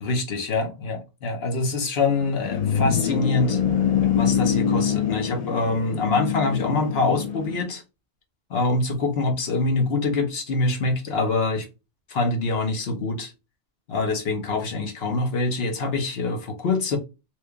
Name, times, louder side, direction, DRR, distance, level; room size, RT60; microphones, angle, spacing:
voice 1, 0.0-3.6 4.2-7.8 8.5-11.7 12.1-13.3 13.9-17.0, left 3 dB, 60° left, 1.2 m, -25 dB
sound 1, 2.0-7.6, left 8 dB, 45° left, 0.5 m, -25 dB
3.0 x 2.6 x 3.4 m
omnidirectional pair, 1.2 m